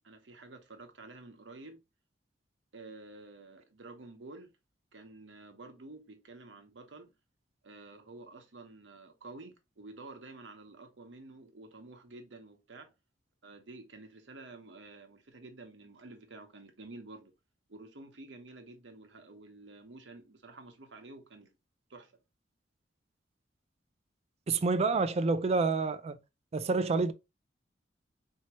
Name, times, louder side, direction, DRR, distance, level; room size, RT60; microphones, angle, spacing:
voice 1, 0.0-1.8 2.7-4.5 4.9-7.1 7.6-12.9 13.4-17.3 17.7-21.6 21.9-22.1, right 2 dB, 85° right, 1.0 m, -50 dB
voice 2, 24.5-26.2 26.5-27.1, right 4 dB, 35° right, 0.4 m, -28 dB
4.5 x 2.9 x 2.9 m
head